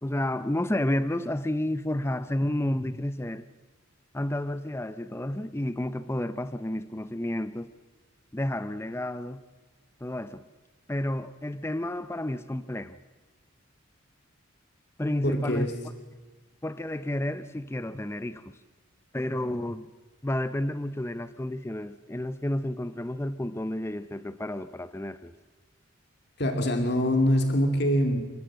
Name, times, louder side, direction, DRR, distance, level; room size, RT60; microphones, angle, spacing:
voice 1, 0.0-3.4 4.1-7.7 8.3-9.4 10.0-10.4 10.9-13.0 15.0-15.7 16.6-18.6 19.1-19.9 20.2-25.3, left 1 dB, 10° left, 0.5 m, -31 dB
voice 2, 15.2-15.7 26.4-28.2, equal, 50° left, 2.6 m, -24 dB
29.0 x 12.5 x 7.7 m
head